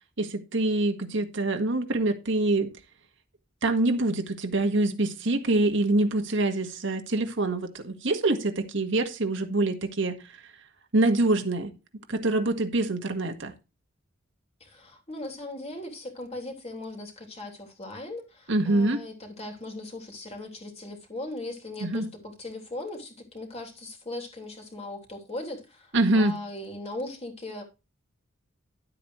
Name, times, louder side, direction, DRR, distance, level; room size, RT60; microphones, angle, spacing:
voice 1, 0.2-2.7 3.6-10.1 10.9-11.7 12.1-13.5 18.5-19.0 21.8-22.1 25.9-26.3, right 2 dB, 65° right, 1.7 m, -25 dB
voice 2, 14.6-27.6, left 2 dB, 30° left, 3.2 m, -39 dB
11.5 x 8.3 x 3.2 m
head